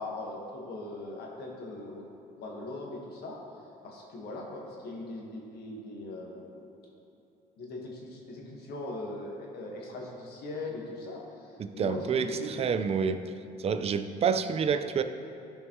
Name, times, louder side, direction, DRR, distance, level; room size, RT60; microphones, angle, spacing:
voice 1, 0.0-2.1 2.4-3.4 3.8-6.7 7.6-12.6, left 2 dB, 70° left, -1 dB, 1.6 m, -40 dB
voice 2, 11.6-13.2 13.6-15.0, right 6 dB, 35° right, 10 dB, 0.4 m, -28 dB
13.0 x 5.4 x 3.1 m, 2.8 s
cardioid pair, 110°, 17 cm